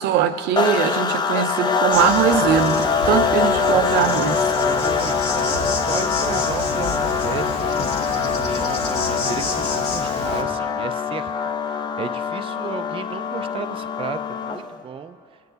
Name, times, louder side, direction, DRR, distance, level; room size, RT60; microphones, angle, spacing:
voice 1, 0.0-4.5, right 9 dB, 85° right, 8 dB, 0.7 m, -21 dB
sound 1, 0.6-14.8, left 5 dB, 25° left, 0.6 m, -23 dB
Insect, 1.9-10.4, left 3 dB, 85° left, 2.0 m, -30 dB
voice 2, 4.6-11.3 11.6-15.2, right 7 dB, 30° right, 9 dB, 0.4 m, -34 dB
21.5 x 9.3 x 4.0 m, 2.4 s
cardioid pair, 110°, 17 cm